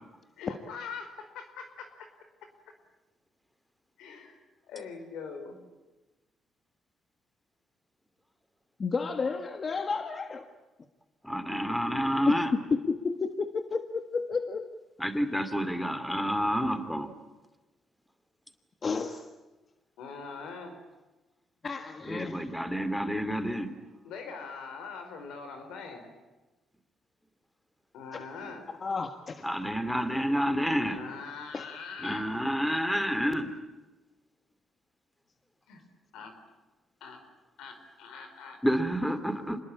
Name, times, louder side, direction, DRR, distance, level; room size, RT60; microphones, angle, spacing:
voice 1, 0.4-2.1 2.4-2.5 4.0-4.4 4.6-5.6 11.5-11.6 20.0-20.8 24.0-26.1 27.9-28.7 30.7-32.3 35.7-35.8 36.1-36.4 37.0-37.2 37.6-38.6, left 5 dB, 90° left, 6 dB, 4.9 m, -42 dB
voice 2, 8.8-10.5 12.3-14.7 18.8-19.3 21.6-22.5 28.1-28.2 28.8-29.4 31.5-31.6, left 4 dB, 40° left, 7 dB, 1.6 m, -31 dB
voice 3, 11.2-12.5 15.0-17.1 22.0-23.8 29.4-31.0 32.0-33.5 38.6-39.6, equal, 5° left, 10 dB, 2.6 m, -29 dB
26.5 x 21.0 x 8.8 m, 1.1 s
cardioid pair, 90°, 0 cm